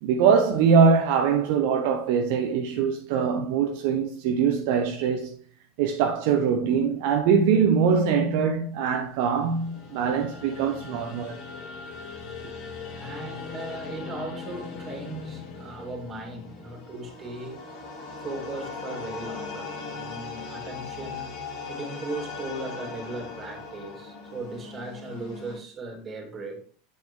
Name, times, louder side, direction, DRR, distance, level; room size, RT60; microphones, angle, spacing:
voice 1, 0.0-5.4 5.8-11.3, right 6 dB, 55° right, 0.9 m, -22 dB
sound 1, 9.1-25.6, left 4 dB, 45° left, 2.2 m, -39 dB
voice 2, 12.9-17.6 18.2-21.3 21.7-26.6, right 2 dB, 25° right, 3.0 m, -37 dB
9.1 x 7.7 x 3.3 m
figure-of-eight pair, 80°, 0 cm